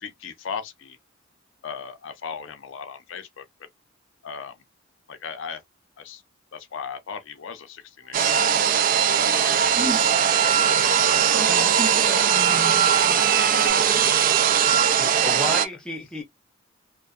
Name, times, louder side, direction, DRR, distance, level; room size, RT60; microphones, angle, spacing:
voice 1, 0.0-1.0 1.6-3.5 4.2-4.5 5.1-5.6 6.0-6.2 6.5-8.5 9.1-10.1 10.4-11.0, left 6 dB, 70° left, 0.5 m, -37 dB
sound 1, 8.0-13.7, right 5 dB, 70° right, 1.2 m, -41 dB
sound 2, 8.1-15.7, right 8 dB, 45° right, 0.3 m, -20 dB
voice 2, 9.8-10.1 11.3-13.3, right 2 dB, 25° right, 0.9 m, -33 dB
voice 3, 15.0-16.2, equal, 5° left, 0.7 m, -32 dB
2.6 x 2.1 x 2.3 m
head